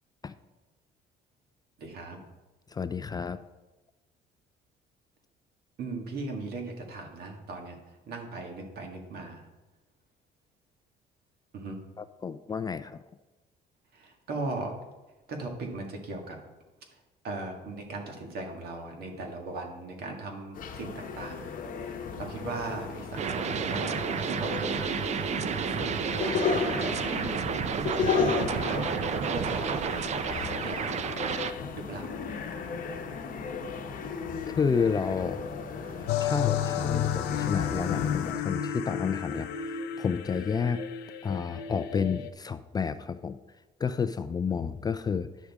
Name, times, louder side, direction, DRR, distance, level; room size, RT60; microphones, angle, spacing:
voice 1, 1.8-2.2 5.8-9.5 11.5-11.9 13.9-14.8 15.3-16.4 16.9-27.5 28.2-30.9 31.7-32.4, right 3 dB, 65° right, 2 dB, 1.8 m, -39 dB
voice 2, 2.7-3.4 12.0-13.0 34.5-35.4 36.2-40.8 41.2-43.4 43.8-45.3, left 6 dB, 25° left, 12 dB, 0.3 m, -30 dB
sound 1, 20.5-38.3, left 6 dB, 55° left, 0.9 m, -34 dB
sound 2, 23.2-31.5, right 7 dB, 40° right, 0.5 m, -31 dB
sound 3, 36.1-42.3, left 9 dB, 80° left, 0.6 m, -32 dB
10.0 x 6.3 x 3.5 m, 1.1 s
cardioid pair, 110°, 17 cm